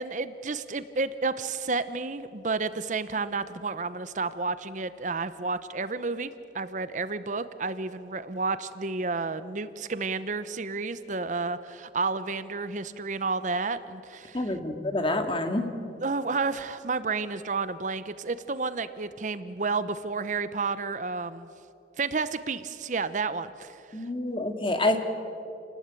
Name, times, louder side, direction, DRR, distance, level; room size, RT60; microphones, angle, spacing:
voice 1, 0.0-14.4 16.0-21.5 22.0-24.1, right 4 dB, 45° right, 13 dB, 0.8 m, -31 dB
voice 2, 14.3-15.7 23.9-25.0, left 2 dB, 30° left, 6 dB, 2.2 m, -27 dB
28.5 x 19.0 x 9.1 m, 2.8 s
head